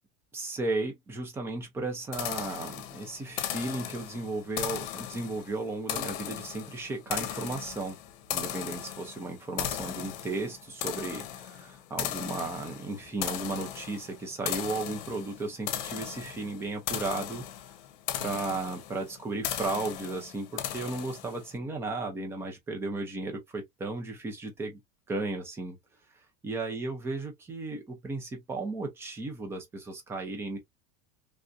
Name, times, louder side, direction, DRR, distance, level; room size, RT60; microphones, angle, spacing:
voice 1, 0.3-8.0 8.3-17.4 18.2-24.8 25.1-25.8 26.4-30.6, right 2 dB, 10° right, 0.5 m, -35 dB
sound 1, 2.1-21.5, left 11 dB, 65° left, 0.8 m, -37 dB
3.4 x 2.5 x 2.5 m
supercardioid pair, 180°, 32 cm